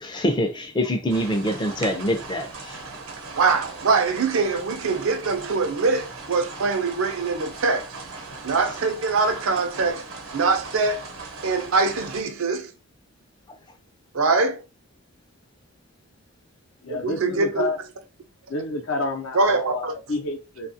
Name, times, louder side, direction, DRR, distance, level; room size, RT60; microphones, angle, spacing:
voice 1, 0.0-2.8, equal, 20° left, 0.5 m, -25 dB
sound 1, 1.1-12.2, right 3 dB, 85° right, 0.9 m, -39 dB
voice 2, 3.3-7.9 8.4-10.0 10.3-11.0 11.4-12.7 14.1-14.6 16.9-17.7 19.3-19.9, right 4 dB, 70° right, 0.5 m, -23 dB
voice 3, 16.8-17.8 18.5-20.7, left 2 dB, 70° left, 0.7 m, -29 dB
2.8 x 2.4 x 2.7 m
head